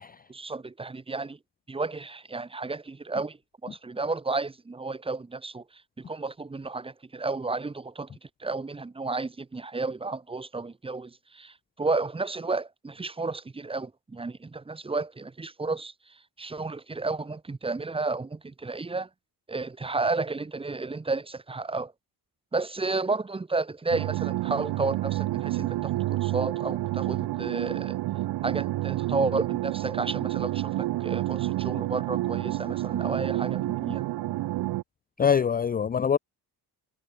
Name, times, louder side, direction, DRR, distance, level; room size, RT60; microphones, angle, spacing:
voice 1, 0.3-1.4 1.7-3.4 3.6-5.6 6.0-8.1 8.4-19.1 19.5-21.9 22.5-28.0 28.4-34.0, right 3 dB, 15° right, 1.4 m, -32 dB
sound 1, 23.9-34.8, right 16 dB, 65° right, 0.8 m, -29 dB
voice 2, 35.2-36.2, left 7 dB, 20° left, 0.6 m, -24 dB
cardioid pair, 175°, 41 cm